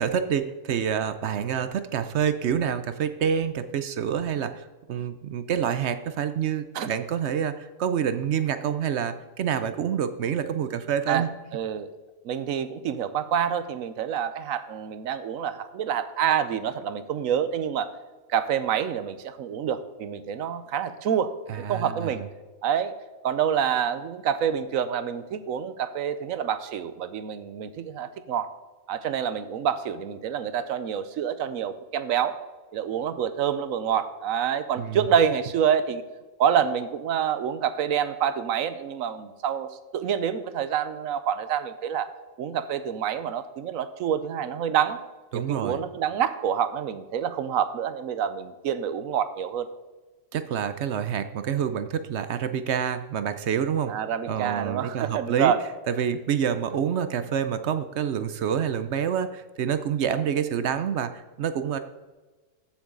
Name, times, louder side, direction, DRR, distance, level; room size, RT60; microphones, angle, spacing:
voice 1, 0.0-11.3 21.5-22.2 34.8-35.1 45.3-45.8 50.3-53.9 54.3-55.5 55.9-61.8, right 8 dB, 65° right, 11 dB, 0.9 m, -27 dB
voice 2, 11.5-11.9 12.2-17.9 18.3-22.2 22.6-22.9 23.2-28.5 28.9-32.4 32.7-36.0 36.4-42.1 42.4-45.0 45.3-49.7 53.9-55.6, right 8 dB, 85° right, 12 dB, 1.1 m, -27 dB
14.0 x 7.2 x 3.8 m, 1.2 s
omnidirectional pair, 1.4 m